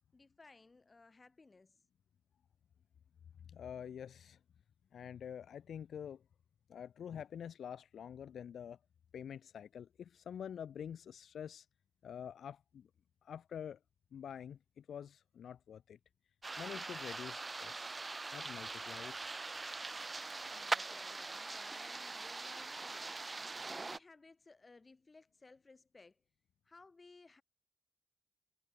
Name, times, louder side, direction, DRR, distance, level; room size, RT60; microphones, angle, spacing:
voice 1, 0.1-1.8 20.4-26.2 26.6-27.4, left 3 dB, 25° left, 7.1 m, -60 dB
voice 2, 3.4-4.4 4.9-6.2 6.7-8.8 9.1-11.7 12.0-12.9 13.2-13.8 14.1-16.0 16.6-18.0 18.3-19.2, left 8 dB, 75° left, 0.4 m, -47 dB
sound 1, 16.4-24.0, right 3 dB, 25° right, 0.5 m, -42 dB
wide cardioid pair, 125°, 0 cm